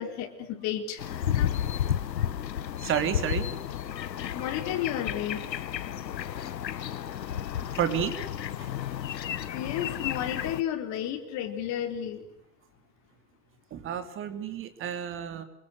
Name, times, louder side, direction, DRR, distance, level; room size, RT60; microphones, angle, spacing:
voice 1, 0.0-1.5 4.3-5.4 8.8-9.0 9.4-12.2, left 10 dB, 35° left, 8 dB, 4.1 m, -33 dB
sound 1, 1.0-10.6, left 10 dB, 85° left, 1.8 m, -32 dB
voice 2, 2.8-3.5 7.8-8.2 8.6-8.7 13.7-15.4, right 9 dB, 25° right, 9 dB, 3.3 m, -30 dB
27.5 x 25.5 x 8.1 m, 0.81 s
hypercardioid pair, 135°, 49 cm